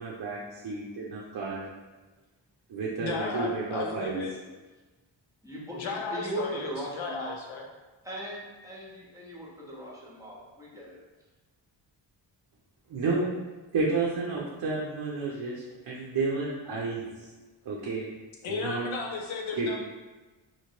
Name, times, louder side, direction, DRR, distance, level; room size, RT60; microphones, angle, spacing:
voice 1, 0.0-1.6 2.7-4.2 12.9-13.3 13.7-17.0 17.7-18.1 18.5-18.8 19.6-19.8, right 3 dB, 55° right, -4 dB, 0.6 m, -31 dB
voice 2, 3.0-4.3 5.7-7.6 18.4-19.8, left 4 dB, 75° left, 1 dB, 0.7 m, -34 dB
voice 3, 5.4-7.3 8.0-11.0, right 1 dB, 5° right, -6 dB, 1.0 m, -39 dB
3.0 x 2.9 x 2.8 m, 1.2 s
cardioid pair, 70°, 47 cm